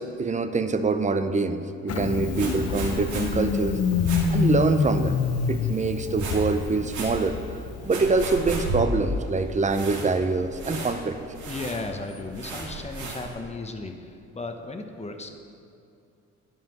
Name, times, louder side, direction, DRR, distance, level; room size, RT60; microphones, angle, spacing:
voice 1, 0.0-3.8 4.3-5.2 5.5-11.2, right 3 dB, 25° right, 10 dB, 0.6 m, -25 dB
Engine starting, 1.9-8.4, left 5 dB, 55° left, 0.8 m, -27 dB
voice 2, 1.9-2.3 11.4-15.4, left 3 dB, 20° left, 5 dB, 0.9 m, -35 dB
sound 1, 2.2-13.3, right 2 dB, 75° right, 2.1 m, -35 dB
10.5 x 5.6 x 5.9 m, 2.5 s
cardioid pair, 90°, 30 cm